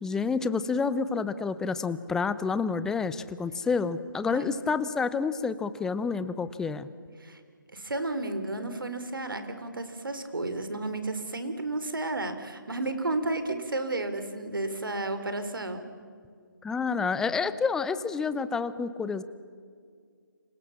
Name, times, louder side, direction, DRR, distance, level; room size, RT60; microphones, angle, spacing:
voice 1, 0.0-6.9 16.6-19.2, left 5 dB, 5° left, 14 dB, 0.7 m, -29 dB
voice 2, 7.7-15.9, right 2 dB, 80° right, 9 dB, 4.0 m, -32 dB
30.0 x 27.0 x 7.3 m, 2.1 s
figure-of-eight pair, 150°, 11 cm